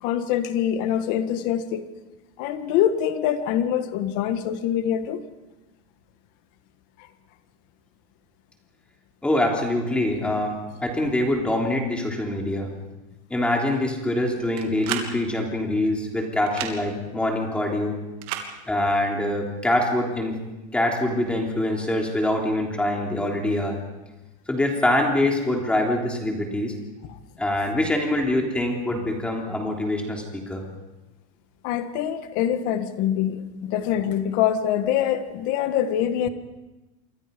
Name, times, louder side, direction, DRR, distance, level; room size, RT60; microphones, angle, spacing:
voice 1, 0.0-1.9 2.4-5.2 31.6-36.3, left 10 dB, 45° left, 9 dB, 1.7 m, -24 dB
voice 2, 9.2-12.7 13.3-18.0 18.7-20.4 20.7-23.8 24.5-26.7 27.4-30.6, left 1 dB, 5° left, 1 dB, 3.3 m, -24 dB
sound 1, 14.6-15.1 16.5-16.7 18.2-18.5, right 10 dB, 45° right, 2.9 m, -30 dB
27.5 x 23.5 x 5.3 m, 1.1 s
supercardioid pair, 170°, 20 cm